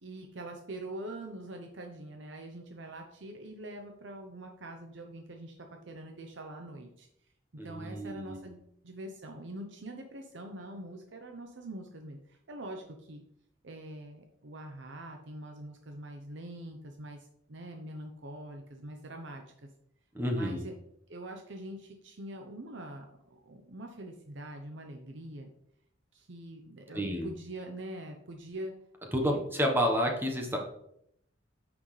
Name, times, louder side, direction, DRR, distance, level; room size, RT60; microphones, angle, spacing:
voice 1, 0.0-5.5 5.9-7.1 7.6-13.2 13.6-19.7 20.3-20.7 21.1-25.5 26.1-28.7 29.2-29.4, right 1 dB, 65° right, 4 dB, 0.8 m, -44 dB
voice 2, 7.6-8.4 20.1-20.7 26.9-27.3 29.1-30.6, equal, 10° right, 1 dB, 1.1 m, -30 dB
9.5 x 6.1 x 3.3 m, 0.74 s
head